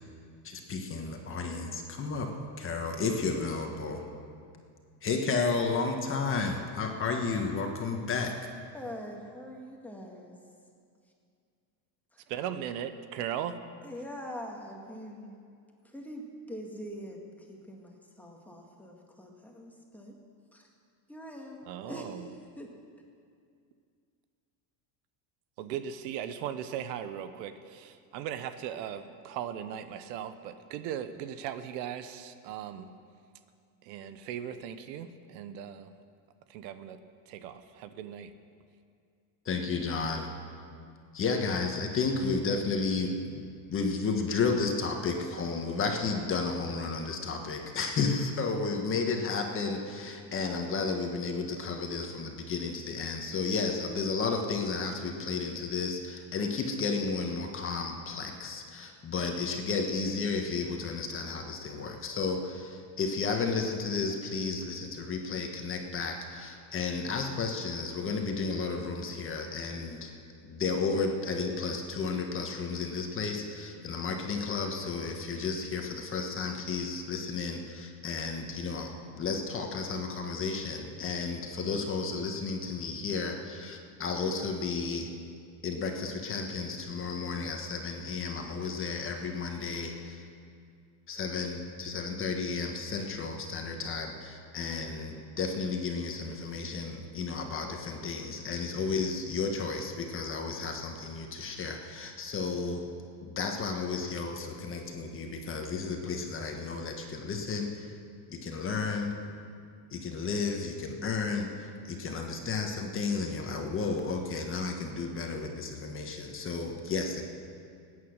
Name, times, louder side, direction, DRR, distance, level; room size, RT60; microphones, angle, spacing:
voice 1, 0.4-4.0 5.0-8.3 39.4-40.3 41.1-70.1 70.4-85.1 85.6-90.2 91.1-102.8 103.2-108.0 108.3-109.2 109.9-117.2, left 4 dB, 25° left, 3 dB, 1.5 m, -32 dB
voice 2, 8.7-10.4 12.1-12.2 13.8-15.4 15.8-20.2 20.5-20.7 21.1-21.6 21.9-22.3 22.6-22.7, equal, 5° left, 0 dB, 1.8 m, -43 dB
voice 3, 12.3-13.6 21.7-22.3 25.6-32.9 33.8-35.9 36.5-37.0 37.3-38.3, right 9 dB, 90° right, 11 dB, 1.0 m, -38 dB
18.5 x 9.4 x 6.6 m, 2.3 s
cardioid pair, 150°, 48 cm